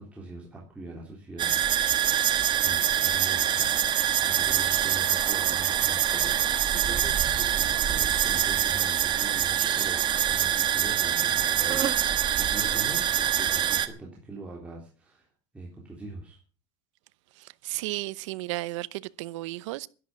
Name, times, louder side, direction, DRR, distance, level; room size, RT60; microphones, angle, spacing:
voice 1, 0.0-1.6 2.6-15.3 15.5-16.4, right 2 dB, 10° right, 3.5 m, -42 dB
sound 1, 1.4-13.9, right 10 dB, 30° right, 1.4 m, -25 dB
voice 2, 17.4-19.9, right 19 dB, 80° right, 0.8 m, -34 dB
12.0 x 11.5 x 7.4 m
supercardioid pair, 150°, 16 cm